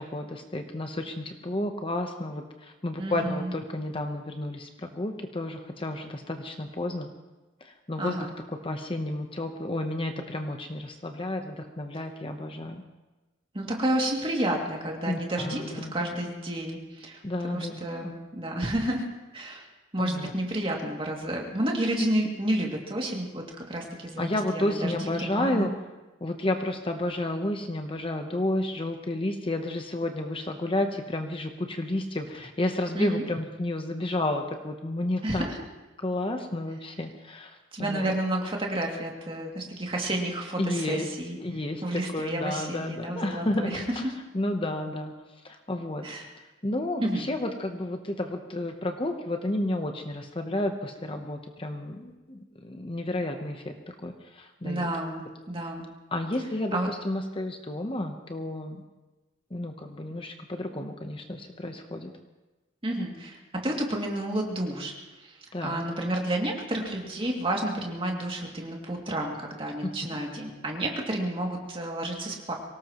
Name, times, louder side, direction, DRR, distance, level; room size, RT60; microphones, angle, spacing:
voice 1, 0.1-7.1 7.6-8.2 8.6-12.8 15.1-16.1 17.2-18.1 20.0-20.3 24.2-25.7 26.2-35.4 36.0-38.1 40.6-41.1 41.3-44.0 44.3-45.1 45.4-46.0 46.6-53.7 54.0-54.9 56.1-58.8 59.5-62.1 65.5-65.8 70.1-70.2, left 1 dB, 30° left, 5 dB, 0.9 m, -31 dB
voice 2, 3.0-3.5 8.0-8.3 12.0-12.1 13.5-19.1 19.3-19.7 19.9-24.3 24.5-25.7 32.9-33.2 35.2-35.6 37.7-41.4 41.8-44.1 46.0-46.3 47.0-47.3 54.6-55.8 56.7-56.9 62.8-72.5, right 1 dB, 30° right, 0 dB, 2.5 m, -30 dB
24.0 x 18.0 x 3.0 m, 1.2 s
head